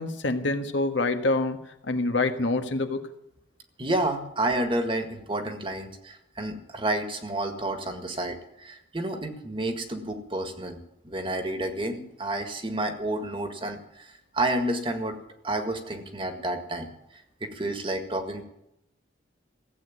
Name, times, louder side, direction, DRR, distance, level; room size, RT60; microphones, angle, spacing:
voice 1, 0.0-1.6 1.8-3.1, left 2 dB, 75° left, 7 dB, 1.5 m, -26 dB
voice 2, 3.8-10.8 11.0-15.2 15.4-18.5, right 1 dB, 25° right, 7 dB, 1.7 m, -30 dB
15.5 x 8.4 x 9.4 m, 0.83 s
head